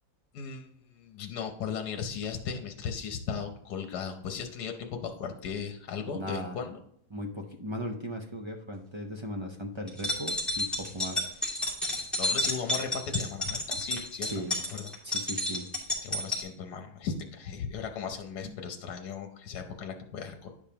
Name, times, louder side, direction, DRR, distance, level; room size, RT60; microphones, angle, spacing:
voice 1, 0.3-6.8 12.2-14.9 16.0-20.5, left 6 dB, 80° left, 5 dB, 1.4 m, -37 dB
voice 2, 6.1-6.6 7.1-11.3 14.3-14.5 15.0-15.7 18.4-18.6, equal, 45° right, 2 dB, 0.3 m, -37 dB
sound 1, 9.9-16.4, left 1 dB, ahead, 2.3 m, -31 dB
10.5 x 5.2 x 2.9 m, 0.71 s
omnidirectional pair, 1.7 m